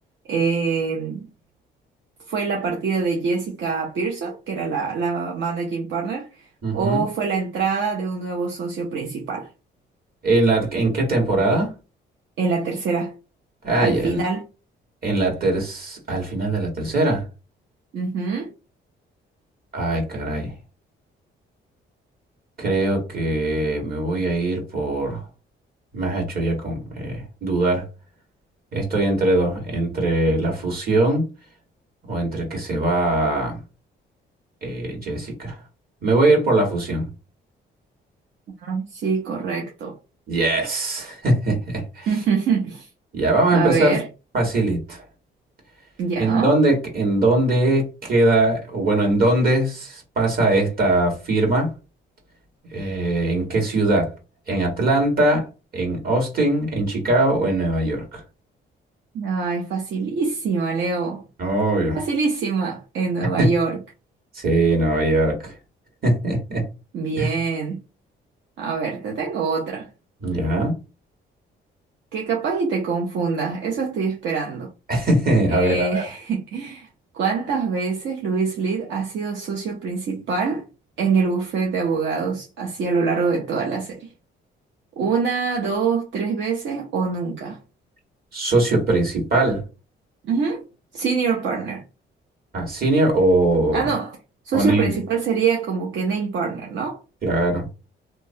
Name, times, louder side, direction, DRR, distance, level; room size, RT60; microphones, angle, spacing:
voice 1, 0.2-1.3 2.3-6.4 6.7-9.5 12.4-13.1 13.8-14.4 17.9-18.5 38.6-40.0 42.1-42.9 43.5-44.1 46.0-46.5 59.1-61.2 61.9-63.8 66.9-67.8 68.6-69.9 72.1-74.7 75.5-76.9 77.1-80.6 81.0-84.1 85.0-87.6 90.2-90.6 90.9-91.8 93.7-94.2 94.4-97.0, right 5 dB, 70° right, 0.7 m, -24 dB
voice 2, 6.6-7.0 10.2-11.7 13.6-14.2 15.0-17.2 19.7-20.5 22.6-25.2 25.9-27.8 28.7-31.3 32.1-33.6 34.6-35.6 36.0-37.1 40.3-42.1 43.1-44.0 44.3-45.0 46.2-51.7 52.7-54.1 54.5-55.5 55.7-58.2 61.4-62.0 63.4-63.5 64.3-65.5 66.0-66.6 67.2-67.3 70.2-70.7 74.9-76.0 88.3-89.6 92.5-93.9 94.5-94.9 97.2-97.7, right 2 dB, 50° right, 1.7 m, -21 dB
2.9 x 2.2 x 2.7 m
cardioid pair, 90°, 20 cm